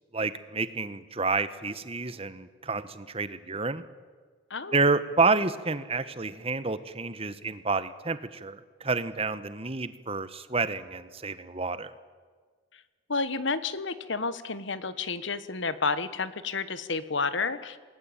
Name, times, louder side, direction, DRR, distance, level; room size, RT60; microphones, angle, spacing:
voice 1, 0.1-3.8 4.7-11.9, right 3 dB, 30° right, 13 dB, 1.3 m, -29 dB
voice 2, 13.1-17.8, left 4 dB, 65° left, 13 dB, 1.4 m, -30 dB
28.0 x 20.0 x 8.9 m, 1.5 s
head